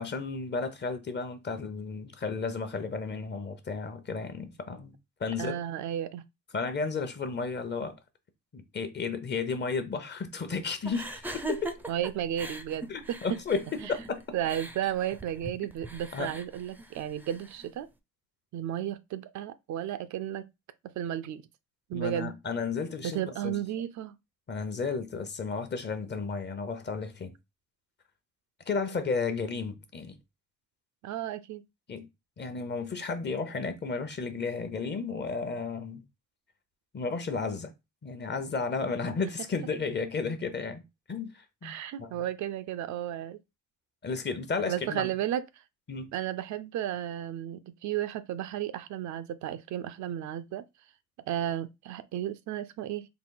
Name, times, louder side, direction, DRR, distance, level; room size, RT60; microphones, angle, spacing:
voice 1, 0.0-4.9 5.2-5.6 6.5-8.0 8.5-11.8 12.9-14.2 16.1-16.3 21.9-23.6 24.5-27.3 28.7-30.2 31.9-32.1 32.4-36.0 36.9-37.7 38.0-40.8 41.1-42.1 44.0-45.1 45.9-46.1, left 4 dB, 35° left, 0.8 m, -33 dB
voice 2, 5.4-6.2 11.9-13.4 14.3-17.9 18.5-20.5 20.8-21.4 21.9-22.3 23.0-24.2 31.0-31.6 41.6-43.4 44.7-45.4 46.1-50.6 51.3-53.1, right 11 dB, 70° right, 0.5 m, -33 dB
sound 1, 10.8-17.7, right 2 dB, 5° right, 0.5 m, -41 dB
4.0 x 2.3 x 3.8 m
cardioid pair, 90°, 30 cm